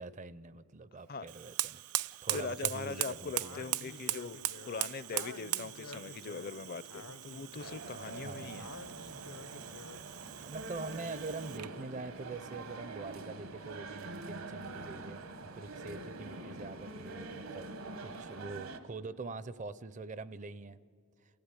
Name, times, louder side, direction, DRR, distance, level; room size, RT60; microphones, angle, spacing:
voice 1, 0.0-1.8 2.2-3.6 8.2-8.7 10.0-17.7 18.0-20.8, right 3 dB, 35° right, 16 dB, 0.5 m, -44 dB
Fire, 1.2-11.8, right 15 dB, 90° right, 0.5 m, -40 dB
voice 2, 2.3-4.4 4.7-8.7, left 4 dB, 40° left, 17 dB, 0.5 m, -41 dB
Speech, 3.4-10.1, left 4 dB, 80° left, 0.8 m, -51 dB
sound 1, 7.6-18.8, right 3 dB, 75° right, 1.3 m, -45 dB
28.5 x 15.5 x 9.8 m, 2.4 s
head